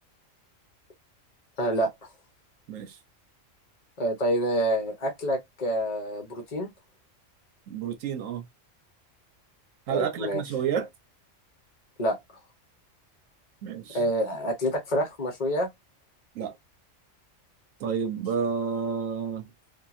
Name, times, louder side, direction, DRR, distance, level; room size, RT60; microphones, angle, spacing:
voice 1, 1.6-1.9 4.0-6.7 9.9-10.4 12.0-12.2 13.9-15.7, right 1 dB, 40° left, 0.8 m, -27 dB
voice 2, 7.7-8.4 9.9-10.9 13.6-14.0 16.3-16.5 17.8-19.5, right 7 dB, 80° right, 1.1 m, -30 dB
2.8 x 2.6 x 2.4 m
omnidirectional pair, 1.3 m